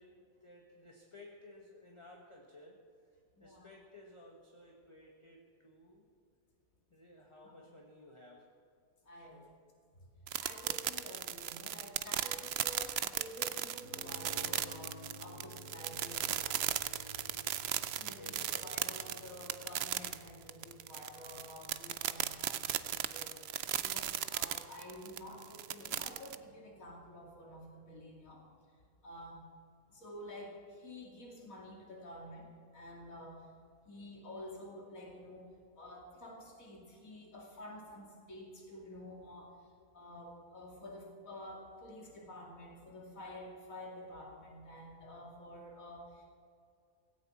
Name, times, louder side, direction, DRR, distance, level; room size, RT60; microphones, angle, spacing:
voice 1, 0.0-6.1 6.9-8.5 9.1-9.5 18.1-18.6, left 2 dB, 20° left, -1 dB, 1.5 m, -57 dB
voice 2, 3.4-3.7 9.0-9.4 10.0-10.1 10.4-16.7 18.0-28.5 29.0-29.4 29.9-33.5 33.8-35.5 35.7-46.3, left 1 dB, 75° left, -1 dB, 3.0 m, -50 dB
sound 1, 10.3-26.3, right 10 dB, 60° right, 0.7 m, -36 dB
sound 2, 13.8-28.4, equal, 50° left, 2.4 m, -56 dB
17.0 x 17.0 x 4.4 m, 2.3 s
omnidirectional pair, 1.4 m